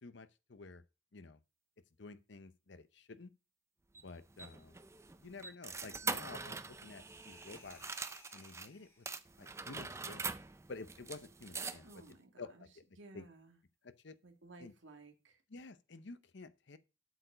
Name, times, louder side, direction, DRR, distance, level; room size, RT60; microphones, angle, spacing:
voice 1, 0.0-0.8 1.1-1.4 2.0-3.3 4.0-4.7 5.2-7.8 8.3-9.1 9.4-10.3 10.7-12.0 12.4-12.7 13.1-13.2 13.8-14.2 14.6-14.7 15.5-16.8, left 3 dB, 60° left, 0.8 m, -51 dB
sound 1, 3.9-8.7 9.1-12.1, right 4 dB, 15° right, 0.4 m, -43 dB
sound 2, 6.8-9.5, left 2 dB, 15° left, 2.3 m, -62 dB
voice 2, 11.8-12.7 13.0-13.6 14.2-15.4, right 3 dB, 70° right, 2.0 m, -57 dB
8.1 x 6.9 x 5.1 m
head